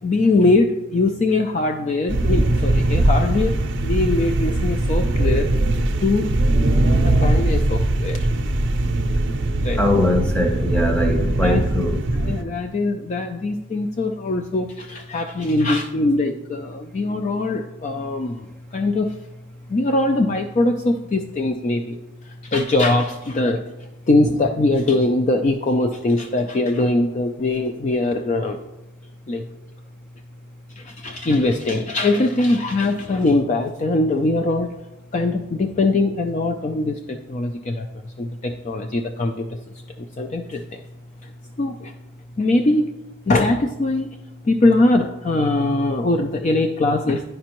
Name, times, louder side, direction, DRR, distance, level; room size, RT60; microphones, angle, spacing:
voice 1, 0.0-5.5 6.0-6.3 7.0-8.3 9.6-9.8 11.4-11.6 12.2-19.2 19.7-22.0 22.2-28.6 29.3-29.4 30.8-34.7 35.1-39.6 40.0-40.8 41.2-41.3 41.6-41.9 42.4-43.0 43.3-44.2 44.4-47.2, left 2 dB, 35° left, 5 dB, 0.3 m, -21 dB
sound 1, 2.1-12.4, right 1 dB, 55° right, 0.5 m, -20 dB
voice 2, 9.8-12.0, left 1 dB, 5° left, 3 dB, 0.7 m, -21 dB
10.0 x 5.2 x 2.9 m, 0.96 s
head